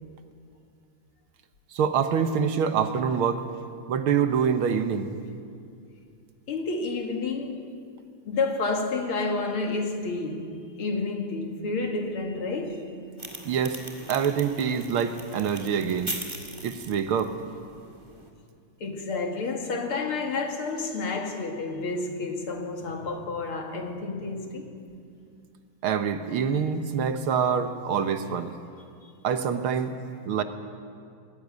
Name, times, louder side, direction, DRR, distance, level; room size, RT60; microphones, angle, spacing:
voice 1, 1.7-3.4 3.9-5.1 13.5-13.8 14.1-16.1 16.6-17.3 25.8-28.5 29.2-29.9 30.3-30.4, right 7 dB, 85° right, 2.0 m, -25 dB
voice 2, 6.5-7.7 8.2-13.0 18.8-24.7 29.0-29.1, left 3 dB, 85° left, 2.8 m, -30 dB
sound 1, 13.2-18.3, right 1 dB, 15° right, 1.9 m, -40 dB
20.5 x 15.0 x 9.5 m
omnidirectional pair, 2.3 m